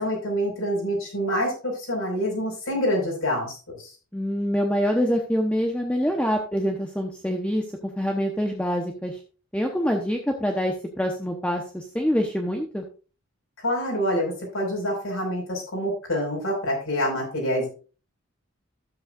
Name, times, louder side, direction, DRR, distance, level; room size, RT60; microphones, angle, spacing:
voice 1, 0.0-3.9 13.6-17.7, equal, 70° left, -3 dB, 4.7 m, -26 dB
voice 2, 4.1-9.2 9.5-12.8, equal, 5° left, 2 dB, 0.8 m, -25 dB
12.5 x 7.8 x 2.4 m, 0.35 s
head